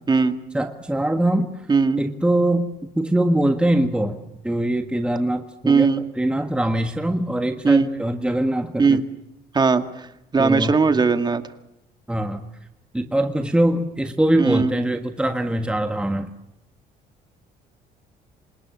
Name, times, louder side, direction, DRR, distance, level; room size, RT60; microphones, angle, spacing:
voice 1, 0.5-1.7 2.0-9.0 10.4-10.8 12.1-12.4 12.9-16.3, right 1 dB, 5° right, 6 dB, 1.5 m, -22 dB
voice 2, 1.7-2.0 5.7-6.0 7.6-7.9 8.8-9.0 9.5-10.1 10.3-11.4 14.4-14.7, right 4 dB, 25° right, 8 dB, 2.1 m, -18 dB
28.0 x 26.0 x 6.3 m, 0.86 s
cardioid pair, 110°, 17 cm